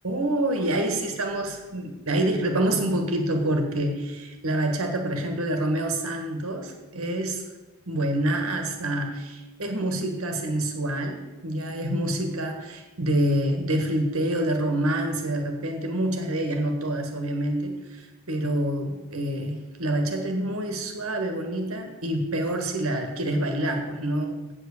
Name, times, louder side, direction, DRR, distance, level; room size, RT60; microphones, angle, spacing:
voice 1, 0.0-7.4 7.9-24.5, right 1 dB, 70° right, 4 dB, 1.6 m, -27 dB
7.8 x 7.8 x 6.6 m, 1.1 s
head